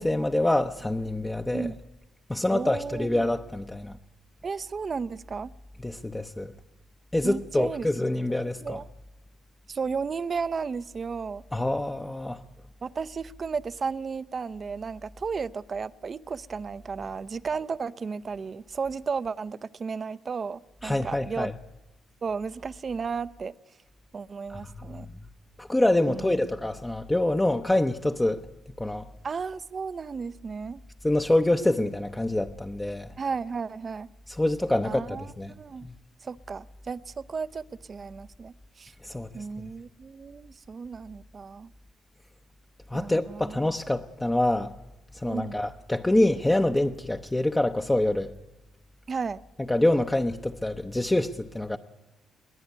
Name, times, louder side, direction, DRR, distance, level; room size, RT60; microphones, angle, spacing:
voice 1, 0.0-1.7 2.3-4.0 5.8-6.5 7.1-8.8 11.5-12.4 20.8-21.5 24.5-24.6 25.6-28.4 28.8-29.1 31.0-33.1 34.3-35.5 35.8-35.9 39.0-39.4 42.9-44.7 45.1-48.3 49.7-51.8, left 1 dB, 10° left, 0.8 m, -26 dB
voice 2, 2.5-3.2 4.4-5.5 7.2-7.9 8.4-8.9 9.7-11.4 12.8-21.5 22.2-23.5 24.1-25.1 26.1-26.5 29.2-30.8 33.2-34.1 34.8-35.9 36.2-38.9 39.3-41.7 42.9-43.6 45.2-45.6 49.1-49.4, right 5 dB, 40° right, 0.7 m, -34 dB
22.0 x 18.0 x 9.5 m
cardioid pair, 90°, 0 cm